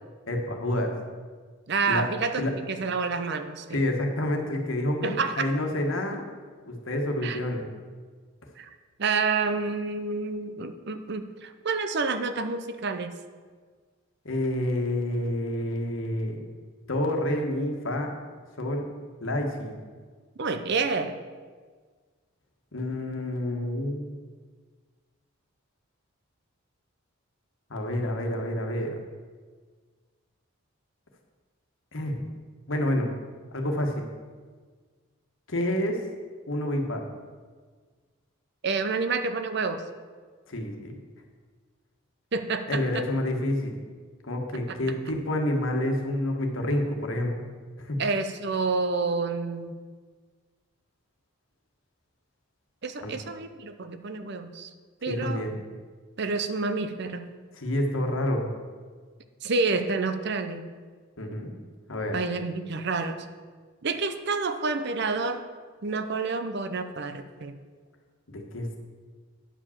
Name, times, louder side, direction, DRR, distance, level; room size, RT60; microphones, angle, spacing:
voice 1, 0.3-0.9 1.9-2.0 2.4-2.5 3.7-6.2 6.7-7.6 14.2-16.3 16.9-18.1 18.6-18.8 19.2-19.8 22.7-24.0 27.7-28.9 31.9-32.1 32.7-33.1 33.5-34.0 35.5-36.0 36.5-37.1 40.5-40.9 42.7-43.8 44.2-47.3 47.8-48.0 53.0-53.2 55.1-55.5 57.6-58.5 61.2-61.5 61.9-62.1 68.3-68.7, left 1 dB, 65° left, 2 dB, 1.4 m, -28 dB
voice 2, 1.7-2.4 2.7-3.8 5.0-5.5 7.2-7.4 8.6-8.7 9.0-13.1 20.4-21.2 38.6-39.9 42.3-43.0 44.7-44.8 48.0-49.7 52.8-54.7 55.0-55.5 56.2-57.3 59.4-60.7 62.1-63.3 63.8-65.5 65.8-67.6, right 4 dB, 55° right, 9 dB, 0.6 m, -29 dB
9.7 x 5.1 x 7.2 m, 1.5 s
head